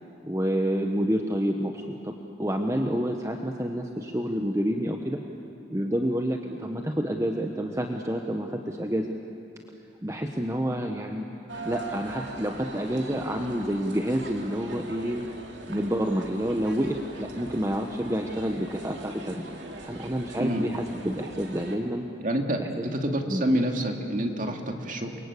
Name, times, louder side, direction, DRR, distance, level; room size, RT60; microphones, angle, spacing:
voice 1, 0.2-5.2 5.7-9.2 10.0-11.3 11.6-15.2 15.7-19.5 19.8-22.1 22.6-22.9 23.3-23.4, equal, 15° right, 3 dB, 1.1 m, -28 dB
sound 1, 11.5-21.8, right 2 dB, 70° right, 3.1 m, -41 dB
voice 2, 22.2-25.2, right 1 dB, 45° right, 3 dB, 2.3 m, -27 dB
28.5 x 23.5 x 8.4 m, 2.7 s
head